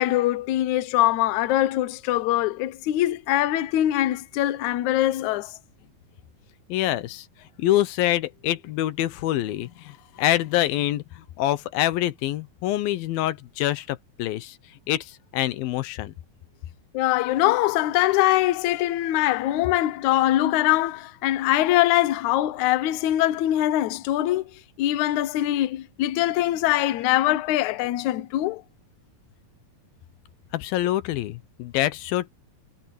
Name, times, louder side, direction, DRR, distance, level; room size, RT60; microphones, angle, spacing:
voice 1, 0.0-5.6 16.9-24.4 24.8-28.6, left 14 dB, 70° left, 2.1 m, -23 dB
voice 2, 6.7-16.1 30.5-32.3, left 14 dB, 85° left, 2.8 m, -26 dB
omnidirectional pair, 4.1 m